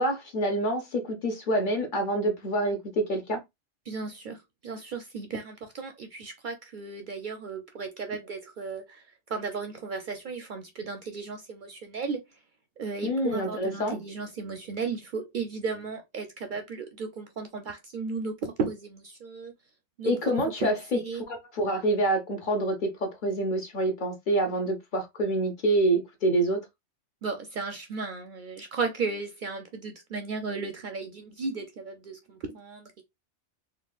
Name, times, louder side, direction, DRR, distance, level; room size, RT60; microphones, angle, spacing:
voice 1, 0.0-3.4 13.0-14.0 20.0-21.0 21.3-26.6, right 1 dB, 50° left, 0.7 m, -27 dB
voice 2, 3.9-12.2 12.8-19.5 20.0-21.2 27.2-33.0, right 4 dB, 60° right, 0.6 m, -35 dB
3.6 x 2.3 x 2.3 m
omnidirectional pair, 1.2 m